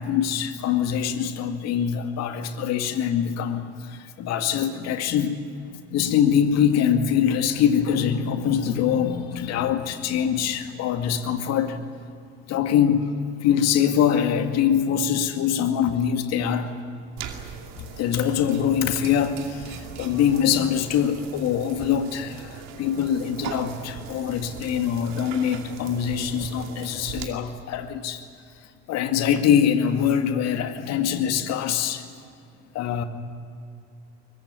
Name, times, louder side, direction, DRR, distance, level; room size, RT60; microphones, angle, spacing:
voice 1, 0.0-5.4 5.9-11.8 12.5-13.1 13.4-16.7 17.8-28.2 28.9-32.0 32.7-33.0, left 8 dB, 55° left, 7 dB, 2.2 m, -23 dB
sound 1, 17.2-27.2, right 7 dB, 55° right, 2.7 m, -39 dB
23.0 x 20.0 x 9.8 m, 2.3 s
hypercardioid pair, 65°, 32 cm